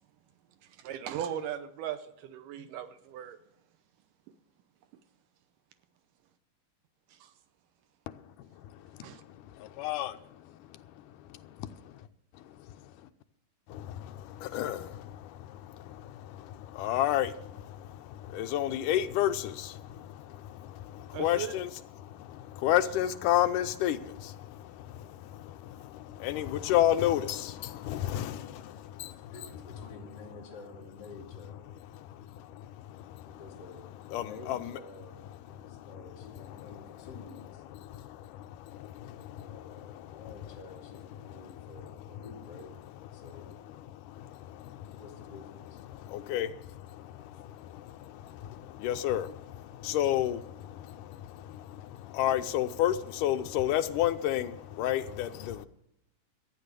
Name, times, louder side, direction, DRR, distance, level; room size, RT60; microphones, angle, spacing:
voice 1, 0.8-3.4 7.2-7.3 9.0-9.2 21.1-21.5, right 9 dB, 80° right, 2.3 m, -38 dB
voice 2, 8.6-9.1 9.6-10.2 10.4-10.5 11.3-11.9 13.7-29.3 31.9-33.4 34.1-34.7 35.6-36.0 36.6-36.8 37.8-40.2 41.3-41.5 43.1-43.2 43.9-45.0 45.9-55.7, left 12 dB, 80° left, 2.2 m, -32 dB
voice 3, 29.2-31.7 33.3-37.6 39.2-42.7 43.1-43.6 45.0-45.8, left 3 dB, 30° left, 2.8 m, -50 dB
14.0 x 9.7 x 6.7 m
omnidirectional pair, 3.8 m